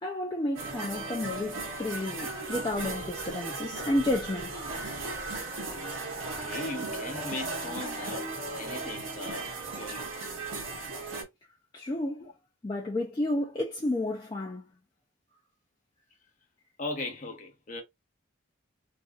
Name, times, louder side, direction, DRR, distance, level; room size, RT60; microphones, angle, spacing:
voice 1, 0.0-4.6 11.7-12.3 12.6-14.7, left 1 dB, 20° left, 0.4 m, -31 dB
sound 1, 0.5-11.2, right 3 dB, 75° right, 0.9 m, -36 dB
voice 2, 6.4-10.2 12.2-12.3 16.8-17.8, left 2 dB, 35° left, 0.8 m, -38 dB
2.6 x 2.5 x 2.3 m
head